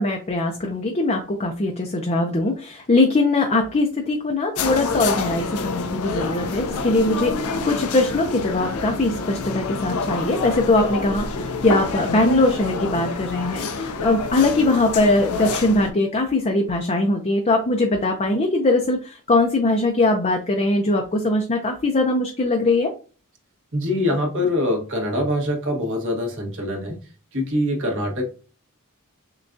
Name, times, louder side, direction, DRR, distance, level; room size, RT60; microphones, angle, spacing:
voice 1, 0.0-22.9, left 2 dB, 30° left, 2 dB, 0.5 m, -21 dB
sound 1, 4.6-15.9, left 3 dB, 75° left, 0.6 m, -27 dB
voice 2, 23.7-27.0 27.3-28.2, left 1 dB, 60° right, 0 dB, 1.4 m, -24 dB
6.7 x 2.3 x 2.6 m, 0.37 s
head